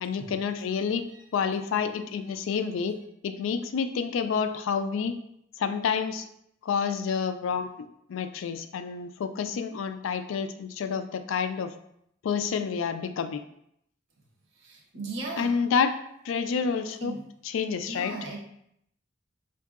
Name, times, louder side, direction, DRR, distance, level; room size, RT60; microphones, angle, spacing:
voice 1, 0.0-1.0 1.3-3.0 3.2-5.2 5.6-6.3 6.6-7.7 8.1-11.7 12.2-13.4 15.4-16.0 16.2-17.1 17.5-18.1, left 6 dB, 85° left, 9 dB, 0.3 m, -28 dB
voice 2, 14.5-15.6 17.0-17.2 17.9-18.4, right 2 dB, 70° right, 0 dB, 0.8 m, -37 dB
4.6 x 2.6 x 2.4 m, 0.74 s
head